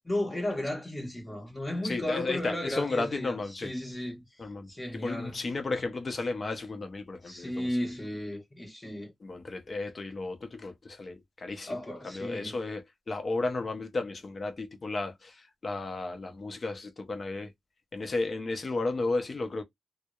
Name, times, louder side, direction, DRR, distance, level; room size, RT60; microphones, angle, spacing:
voice 1, 0.0-5.4 7.2-9.1 11.7-12.6, left 1 dB, 20° left, 1.1 m, -35 dB
voice 2, 1.8-3.7 4.4-7.8 9.2-17.5 17.9-19.6, left 3 dB, 50° left, 0.6 m, -34 dB
2.7 x 2.0 x 2.3 m
cardioid pair, 65°, 0 cm